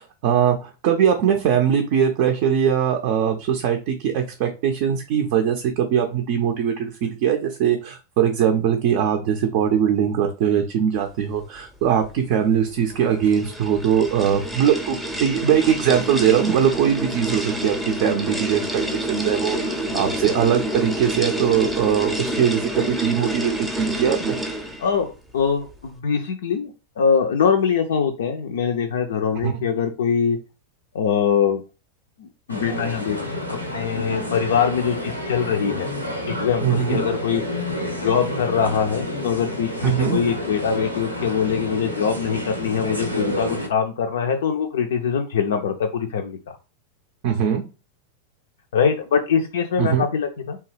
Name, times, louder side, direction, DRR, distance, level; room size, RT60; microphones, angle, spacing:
voice 1, 0.0-24.3 29.4-29.6 36.6-37.0 39.8-40.2 47.2-47.6 49.8-50.1, right 8 dB, 45° right, 3 dB, 0.5 m, -21 dB
sound 1, 12.8-24.9, right 1 dB, ahead, 0.6 m, -28 dB
voice 2, 24.8-30.4 30.9-31.6 32.2-35.9 36.3-37.4 38.0-46.6 48.7-50.6, left 7 dB, 60° left, 4 dB, 0.3 m, -23 dB
sound 2, 32.5-43.7, left 1 dB, 90° right, 0.7 m, -29 dB
2.8 x 2.2 x 3.2 m, 0.31 s
figure-of-eight pair, 90°, 0 cm